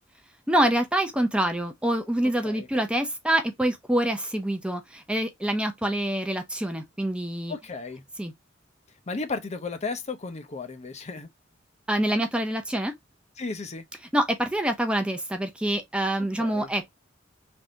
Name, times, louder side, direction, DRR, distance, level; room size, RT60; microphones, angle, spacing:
voice 1, 0.5-7.5 8.2-8.3 11.9-12.9 14.1-16.9, right 1 dB, 5° right, 0.6 m, -26 dB
voice 2, 7.5-8.0 9.1-11.3 13.4-13.8 16.2-16.7, left 3 dB, 35° left, 0.6 m, -34 dB
3.5 x 2.7 x 3.8 m
head